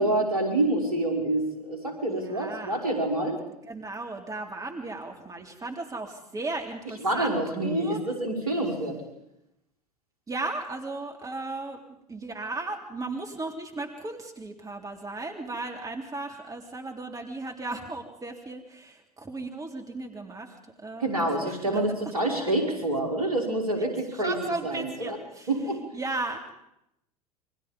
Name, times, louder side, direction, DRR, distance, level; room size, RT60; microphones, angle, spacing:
voice 1, 0.0-3.4 7.0-9.0 21.0-24.4 24.6-25.2 25.5-25.8, right 1 dB, 70° right, 2 dB, 5.6 m, -27 dB
voice 2, 2.1-2.9 3.6-8.0 10.3-21.8 23.8-23.9 24.1-26.6, right 2 dB, 15° right, 3 dB, 3.3 m, -36 dB
28.5 x 24.5 x 5.3 m, 0.82 s
figure-of-eight pair, 75°, 20 cm